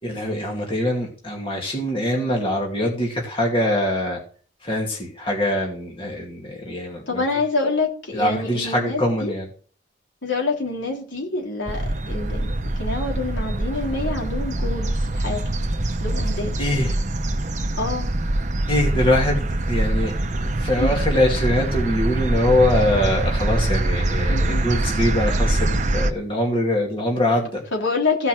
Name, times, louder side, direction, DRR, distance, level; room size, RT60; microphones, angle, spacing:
voice 1, 0.0-4.2 4.6-7.2 8.1-9.5 16.6-17.0 18.7-27.6, left 1 dB, 25° left, -1 dB, 2.4 m, -23 dB
voice 2, 7.1-9.3 10.2-12.5 12.8-15.4 16.0-16.5 17.8-18.1 20.8-20.9 24.2-24.6 27.7-28.3, left 3 dB, 75° left, 0 dB, 3.6 m, -26 dB
sound 1, 11.7-26.1, right 1 dB, 40° right, 0.8 m, -24 dB
15.5 x 5.6 x 6.2 m, 0.42 s
head